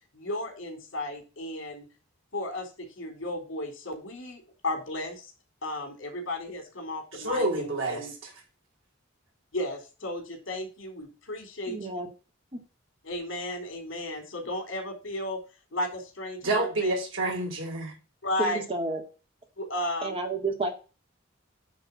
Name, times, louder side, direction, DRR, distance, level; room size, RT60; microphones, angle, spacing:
voice 1, 0.1-1.9 2.3-5.3 5.6-8.1 9.5-11.8 13.0-15.4 15.7-16.9 18.2-18.6 19.6-20.2, left 1 dB, 70° left, 3.7 m, -34 dB
voice 2, 7.1-8.1 16.4-17.9, right 2 dB, 85° right, 4.0 m, -28 dB
voice 3, 11.7-12.1 18.4-19.0 20.0-20.7, right 3 dB, 30° right, 1.9 m, -30 dB
9.6 x 4.0 x 7.1 m
head